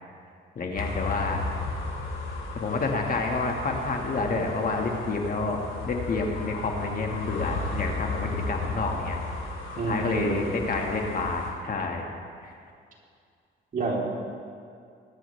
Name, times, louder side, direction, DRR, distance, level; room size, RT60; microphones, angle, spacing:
voice 1, 0.5-1.4 2.5-9.2 9.8-12.1 12.4-12.5, left 3 dB, 45° left, 1 dB, 1.7 m, -29 dB
sound 1, 0.8-11.5, left 3 dB, 80° left, 2.9 m, -34 dB
voice 2, 9.8-10.4 13.7-14.0, right 3 dB, 45° right, -3 dB, 3.4 m, -28 dB
21.5 x 10.0 x 3.3 m, 2.3 s
cardioid pair, 90°, 20 cm